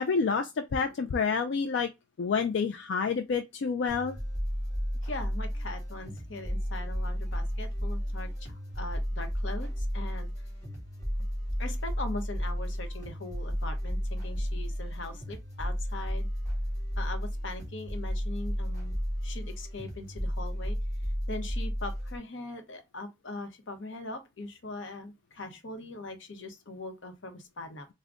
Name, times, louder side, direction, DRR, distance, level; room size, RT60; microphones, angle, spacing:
voice 1, 0.0-1.9 2.2-4.2, left 5 dB, 70° left, 0.4 m, -28 dB
sound 1, 3.9-22.2, equal, 15° left, 1.8 m, -33 dB
voice 2, 5.0-10.3 11.6-16.3 17.0-18.9 19.2-27.9, left 2 dB, 90° left, 0.9 m, -41 dB
3.5 x 2.2 x 3.7 m
head